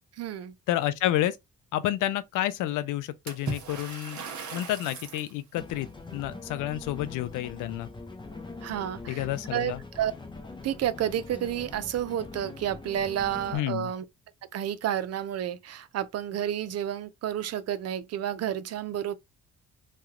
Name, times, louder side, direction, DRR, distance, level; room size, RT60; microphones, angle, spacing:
voice 1, 0.2-0.5 8.6-9.3 9.5-10.1 10.6-14.0 14.5-19.1, right 10 dB, 55° right, 0.5 m, -30 dB
voice 2, 0.7-1.4 1.7-4.2 4.5-7.9 9.1-9.8 13.5-13.9, left 14 dB, 85° left, 0.5 m, -30 dB
Water / Splash splatter, 3.3-5.3, right 5 dB, 70° right, 1.2 m, -38 dB
sound 1, 5.6-13.6, left 3 dB, 15° left, 0.6 m, -43 dB
3.1 x 2.4 x 2.9 m
cardioid pair, 90°, 30 cm